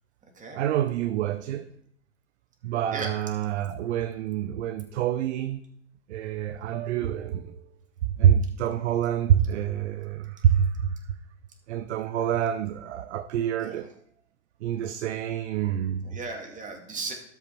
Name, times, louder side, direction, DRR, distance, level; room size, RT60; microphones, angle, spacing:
voice 1, 0.5-1.7 2.6-5.6 6.1-7.7 8.2-11.2 11.7-13.9 14.6-16.0, right 10 dB, 65° right, 0.7 m, -26 dB
voice 2, 16.0-17.1, right 4 dB, 20° right, 2.4 m, -36 dB
12.5 x 5.8 x 4.6 m
figure-of-eight pair, 95°, 38 cm